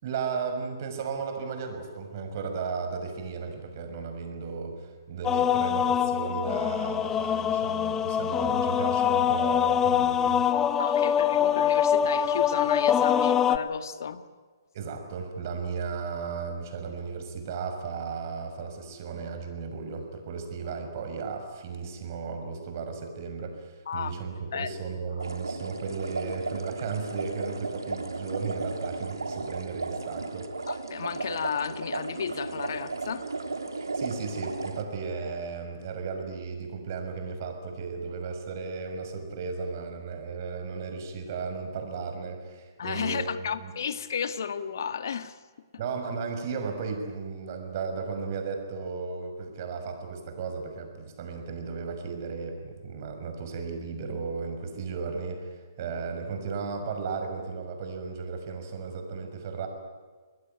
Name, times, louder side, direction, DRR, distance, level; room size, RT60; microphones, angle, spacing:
voice 1, 0.0-10.7 14.7-30.5 33.7-43.7 45.8-59.7, right 5 dB, 45° right, 6 dB, 6.1 m, -35 dB
sound 1, 5.2-13.6, left 9 dB, 15° left, 1.0 m, -24 dB
voice 2, 10.8-14.2 23.9-24.1 24.5-24.7 30.7-33.3 42.8-45.4, left 7 dB, 60° left, 11 dB, 1.8 m, -33 dB
sound 2, 25.2-34.8, right 3 dB, 85° right, 3.1 m, -35 dB
28.5 x 21.5 x 9.4 m, 1.5 s
figure-of-eight pair, 130°, 2 cm